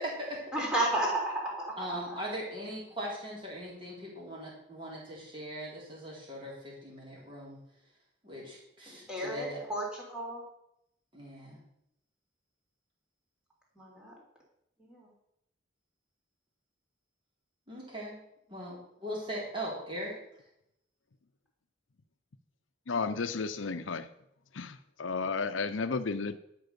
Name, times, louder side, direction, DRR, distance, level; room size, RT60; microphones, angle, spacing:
voice 1, 0.0-0.4 1.8-7.6 8.2-9.6 11.1-11.6 17.7-18.1 18.5-20.2, equal, 25° right, 4.0 m, -40 dB
voice 2, 0.5-2.2 8.9-10.4 13.8-14.2 14.8-15.1, right 1 dB, 5° right, 3.6 m, -33 dB
voice 3, 22.9-24.1 24.5-26.4, left 4 dB, 80° left, 0.7 m, -33 dB
12.0 x 6.1 x 6.9 m
head